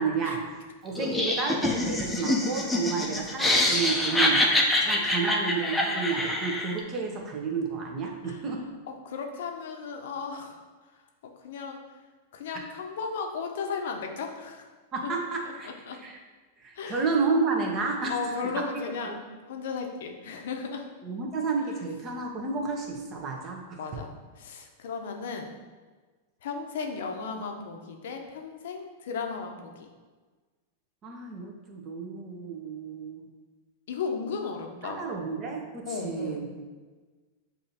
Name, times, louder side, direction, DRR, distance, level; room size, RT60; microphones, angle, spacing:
voice 1, 0.0-8.6 14.9-15.7 16.0-16.2 16.6-18.1 19.0-19.2 21.0-23.8 31.0-33.3 34.8-36.5, right 4 dB, 35° right, 1 dB, 0.9 m, -31 dB
Laughter, 1.0-6.8, left 1 dB, 10° left, 0.6 m, -25 dB
voice 2, 8.9-10.6 11.4-11.8 12.3-14.7 15.0-15.1 15.6-16.0 16.8-17.1 18.1-19.2 19.5-20.9 23.8-25.5 26.4-29.9 33.9-35.0 35.9-36.5, left 5 dB, 70° left, 3 dB, 0.6 m, -35 dB
6.5 x 2.7 x 2.8 m, 1.4 s
hypercardioid pair, 110°, 0 cm